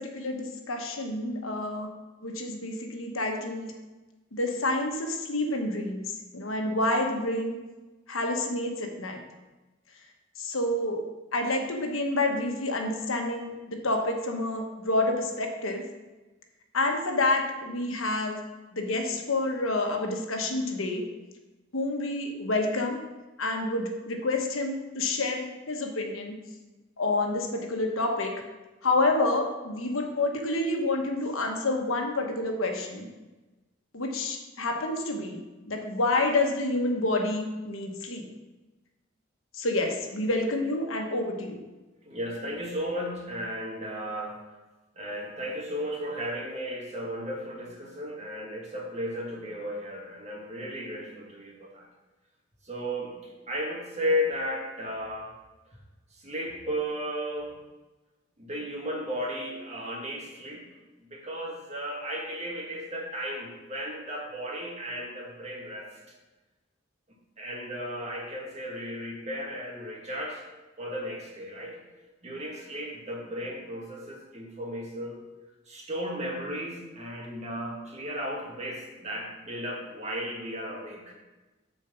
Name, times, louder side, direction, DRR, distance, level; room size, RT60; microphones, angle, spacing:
voice 1, 0.0-1.9 2.2-3.7 4.3-7.6 8.1-9.2 10.4-11.0 11.3-15.8 16.7-18.4 18.7-21.1 21.7-23.0 23.4-26.4 27.0-28.4 28.8-33.1 33.9-35.4 35.7-38.2 39.5-41.6, left 2 dB, 85° left, 3 dB, 1.2 m, -28 dB
voice 2, 42.0-44.4 45.0-51.9 52.7-53.2 53.5-55.3 56.1-57.6 58.4-60.7 61.0-65.9 67.4-70.4 70.8-71.8 72.2-75.2 75.7-81.1, equal, 35° right, -1 dB, 1.8 m, -34 dB
7.4 x 4.6 x 7.0 m, 1.1 s
head